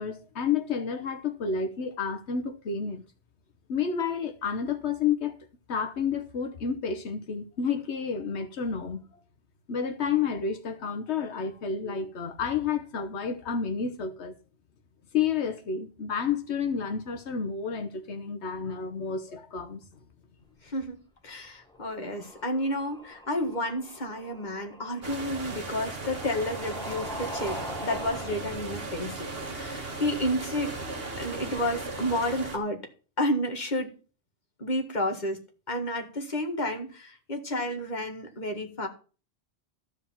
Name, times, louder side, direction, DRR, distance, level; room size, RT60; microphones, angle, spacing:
voice 1, 0.0-3.0 3.7-5.3 5.7-9.0 9.7-14.4 15.1-19.8, left 6 dB, 85° left, 1.3 m, -30 dB
voice 2, 20.6-21.0 21.2-30.7 31.2-32.8 33.2-33.9 34.6-35.4 35.7-38.9, left 1 dB, 40° left, 1.9 m, -31 dB
sound 1, 21.7-28.4, equal, 5° left, 1.4 m, -42 dB
sound 2, 25.0-32.6, right 3 dB, 60° right, 1.8 m, -37 dB
13.5 x 5.0 x 7.2 m
omnidirectional pair, 1.1 m